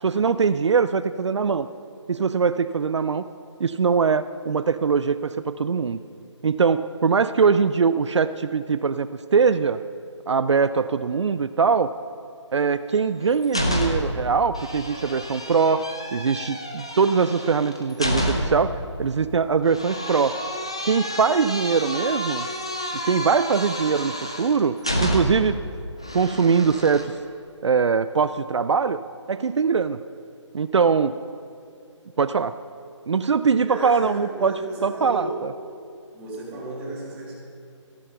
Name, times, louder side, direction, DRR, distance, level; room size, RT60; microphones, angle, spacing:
voice 1, 0.0-1.7 2.1-3.3 3.6-6.0 6.4-9.8 10.3-11.9 12.5-20.4 20.9-22.5 22.9-25.6 26.1-27.1 27.6-29.0 29.3-30.0 30.5-31.2 32.2-32.5 33.1-35.5, right 5 dB, 65° right, 12 dB, 0.4 m, -22 dB
sound 1, 12.9-14.2 14.5-18.7 19.7-25.5 26.0-27.0, equal, 10° left, 0.4 m, -29 dB
voice 2, 33.5-35.4 36.1-37.3, right 2 dB, 10° right, -5 dB, 1.6 m, -33 dB
13.5 x 11.0 x 5.9 m, 2.4 s
hypercardioid pair, 175°, 16 cm